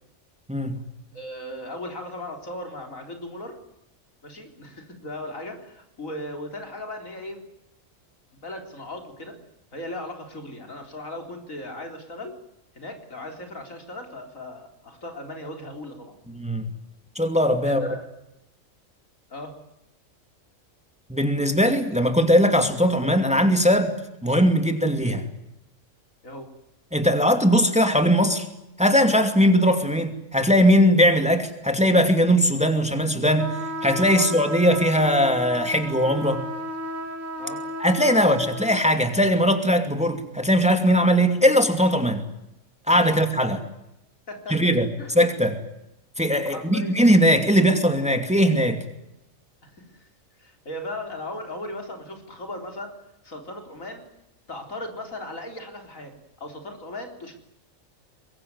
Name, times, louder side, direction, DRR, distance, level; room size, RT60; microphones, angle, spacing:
voice 1, 0.5-0.8 16.3-16.7 17.2-18.0 21.1-23.9 24.2-25.2 26.9-28.5 28.8-33.5 33.8-36.4 37.8-42.3 42.9-43.6 44.5-44.9 45.1-45.6 46.2-48.8, equal, 5° right, 6 dB, 2.5 m, -20 dB
voice 2, 1.1-3.6 4.2-7.4 8.4-9.4 9.7-12.3 12.7-16.1 17.6-18.1 19.3-19.6 26.2-26.5 34.1-34.2 37.4-37.6 38.1-38.3 43.1-43.2 44.3-44.6 45.0-45.2 46.4-47.0 49.6-50.1 50.4-53.0 53.2-54.1 54.5-57.3, left 1 dB, 75° left, 4 dB, 4.4 m, -37 dB
sound 1, 33.4-38.8, right 1 dB, 70° right, 3.5 m, -34 dB
24.5 x 22.0 x 9.6 m, 0.88 s
omnidirectional pair, 1.4 m